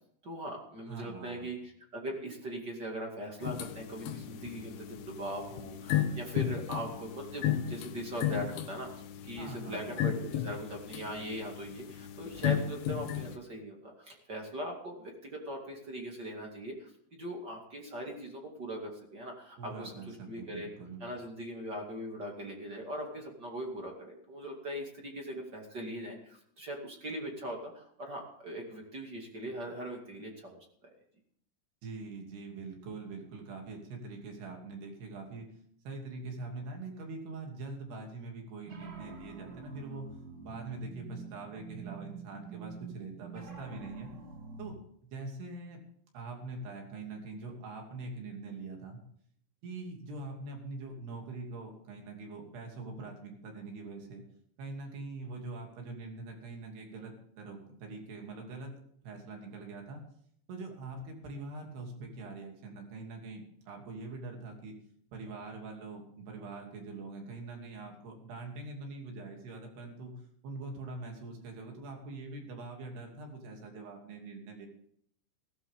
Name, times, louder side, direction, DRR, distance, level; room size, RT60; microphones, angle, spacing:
voice 1, 0.2-20.7 21.0-30.7, right 1 dB, 35° right, 0 dB, 2.0 m, -40 dB
voice 2, 0.9-1.5 9.4-10.0 19.6-21.0 31.8-35.5 35.8-40.1 40.4-44.1 44.6-44.8 45.0-45.8 46.1-49.0 49.6-54.2 54.6-58.7 59.0-60.0 60.5-64.7 65.1-70.1 70.4-74.7, right 3 dB, 65° right, 1 dB, 4.7 m, -43 dB
sound 1, 3.4-13.4, left 10 dB, 85° left, 3.4 m, -35 dB
sound 2, 38.6-44.7, right 4 dB, 50° right, 1.1 m, -46 dB
16.0 x 15.0 x 3.7 m, 0.65 s
omnidirectional pair, 5.2 m